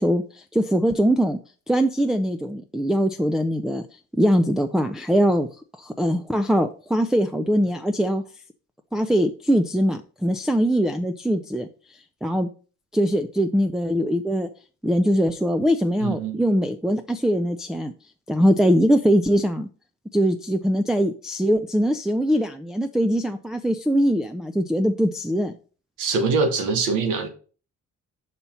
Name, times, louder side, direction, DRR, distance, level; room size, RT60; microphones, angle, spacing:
voice 1, 0.0-1.4 1.7-3.8 4.1-5.5 5.8-8.2 8.9-11.7 12.2-12.5 12.9-14.5 14.8-17.9 18.3-19.7 20.1-25.6, equal, ahead, 0.4 m, -22 dB
voice 2, 16.0-16.4 26.0-27.3, right 4 dB, 90° right, 1.2 m, -23 dB
5.5 x 4.3 x 5.6 m
cardioid pair, 90°, 30 cm